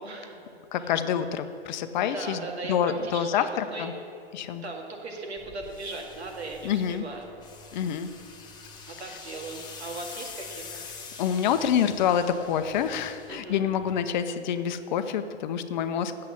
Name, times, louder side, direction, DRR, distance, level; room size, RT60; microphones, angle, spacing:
voice 1, 0.0-0.6 2.1-3.9 4.3-7.3 8.9-10.8 13.3-13.7, right 2 dB, 75° right, 1 dB, 2.1 m, -38 dB
voice 2, 0.7-3.9 4.3-4.6 6.6-7.0 7.7-8.1 11.2-16.3, left 8 dB, 45° left, 10 dB, 0.7 m, -27 dB
sound 1, 5.4-14.0, left 5 dB, 15° left, 1.2 m, -45 dB
8.2 x 7.5 x 8.4 m, 2.5 s
hypercardioid pair, 120°, 33 cm